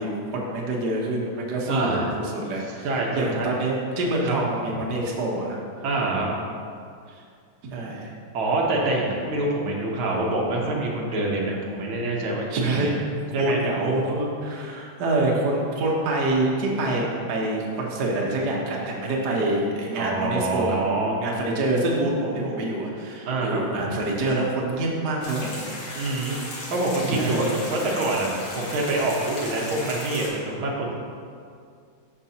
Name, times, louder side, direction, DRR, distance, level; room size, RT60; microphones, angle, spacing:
voice 1, 0.0-2.9 3.1-5.8 7.1-7.2 7.7-8.1 12.5-12.9 13.4-20.8 21.1-25.6 27.0-27.5, right 2 dB, 55° right, -3 dB, 1.6 m, -26 dB
voice 2, 1.7-2.1 2.8-3.5 4.2-4.3 5.8-6.3 8.3-12.9 13.3-13.6 19.9-21.2 23.3-23.6 26.0-26.4 26.7-28.3 28.5-30.9, right 2 dB, 85° right, -2 dB, 1.9 m, -26 dB
sound 1, 25.2-30.3, left 1 dB, 75° left, 2.4 m, -36 dB
13.0 x 5.2 x 2.9 m, 2.3 s
omnidirectional pair, 2.2 m